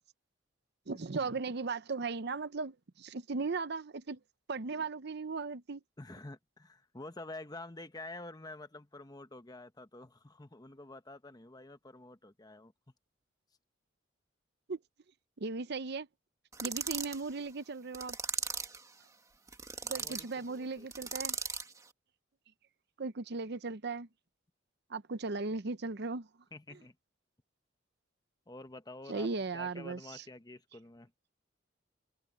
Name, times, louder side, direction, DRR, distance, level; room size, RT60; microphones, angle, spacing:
voice 1, 0.9-4.2 4.5-5.8 14.7-14.8 15.4-16.1 16.6-18.2 19.9-21.4 23.0-24.1 24.9-26.3 29.1-30.2, right 4 dB, 60° right, 0.7 m, -37 dB
voice 2, 6.0-12.7 19.8-21.1 26.5-26.9 28.5-31.1, left 2 dB, 20° left, 1.1 m, -49 dB
sound 1, 16.5-17.2 17.9-18.8 19.5-20.3 20.9-21.7, right 4 dB, 15° right, 1.7 m, -37 dB
head